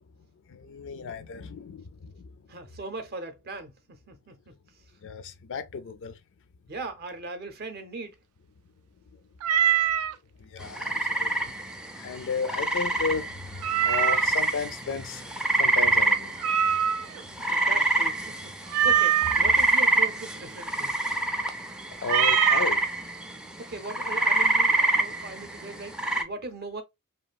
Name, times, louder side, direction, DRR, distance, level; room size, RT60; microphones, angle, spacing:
voice 1, 0.5-2.3 5.0-6.1 10.4-11.5 11.9-15.2 15.6-16.4 21.9-22.8, left 5 dB, 60° left, 0.4 m, -34 dB
voice 2, 2.5-3.8 4.1-4.5 6.7-8.2 17.2-20.9 23.6-26.8, right 3 dB, 50° right, 0.6 m, -39 dB
Meow, 9.4-10.1 13.6-14.4 16.4-17.2 18.7-19.4 22.0-22.7, right 9 dB, 85° right, 0.3 m, -23 dB
sound 1, 10.6-26.2, right 2 dB, 5° right, 0.3 m, -26 dB
2.9 x 2.3 x 2.3 m
head